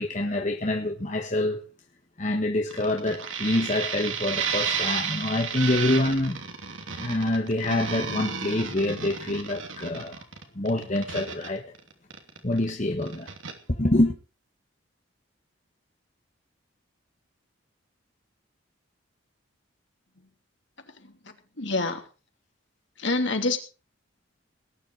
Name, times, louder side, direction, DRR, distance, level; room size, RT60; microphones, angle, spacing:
voice 1, 0.0-1.6 2.2-6.4 7.0-10.2 10.5-11.6 12.4-13.3 13.7-14.1, left 1 dB, 35° left, 1.5 m, -26 dB
sound 1, 2.7-12.7 13.0-13.5, right 6 dB, 75° right, 2.8 m, -32 dB
voice 2, 20.9-22.1 23.0-23.6, left 3 dB, 60° left, 2.9 m, -28 dB
19.5 x 10.5 x 4.7 m
head